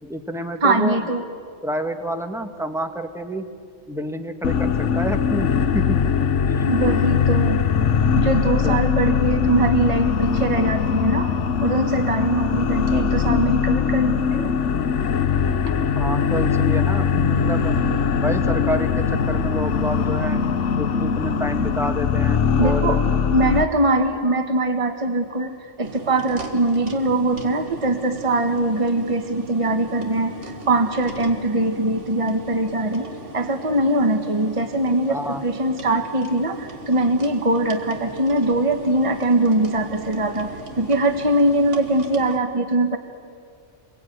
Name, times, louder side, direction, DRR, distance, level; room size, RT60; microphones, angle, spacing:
voice 1, 0.0-1.0 1.6-3.4 3.9-5.5 5.7-6.0 8.6-8.8 16.0-17.7 18.2-20.4 20.8-23.0 35.1-35.4, equal, ahead, 6 dB, 1.5 m, -28 dB
voice 2, 0.6-1.2 6.7-7.6 8.1-14.5 22.6-23.0 23.3-33.1 33.3-43.0, right 1 dB, 30° right, 7 dB, 1.4 m, -22 dB
sound 1, 4.4-23.6, left 6 dB, 80° left, 1.2 m, -21 dB
sound 2, 25.8-42.4, right 2 dB, 85° right, 2.1 m, -38 dB
27.5 x 22.0 x 9.3 m, 2.2 s
omnidirectional pair, 1.2 m